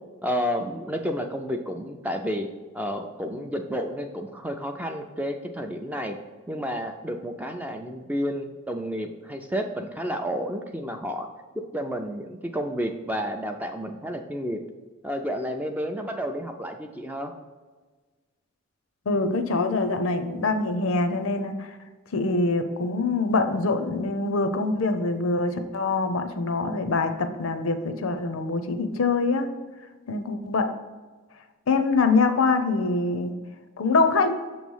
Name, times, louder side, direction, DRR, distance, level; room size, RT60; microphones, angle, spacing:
voice 1, 0.2-2.5 2.7-6.2 6.5-11.3 11.7-14.6 15.0-17.3, equal, 10° right, 4 dB, 0.3 m, -31 dB
voice 2, 19.1-21.8 22.1-29.5 30.1-30.7 31.7-33.3 33.8-34.3, left 3 dB, 80° left, 8 dB, 0.6 m, -24 dB
6.7 x 3.1 x 5.4 m, 1.3 s
head